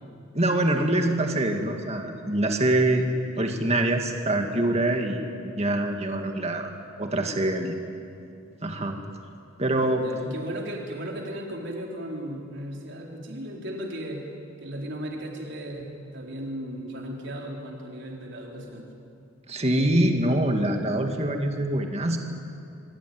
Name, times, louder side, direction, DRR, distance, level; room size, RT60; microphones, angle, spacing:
voice 1, 0.3-3.0 3.4-5.2 5.6-6.7 7.0-7.8 8.6-9.0 9.6-10.0 19.5-22.2, right 1 dB, 30° right, 4 dB, 2.0 m, -24 dB
voice 2, 10.0-14.2 14.6-18.9, right 1 dB, 60° right, 0 dB, 4.3 m, -36 dB
26.5 x 23.0 x 9.5 m, 2.5 s
head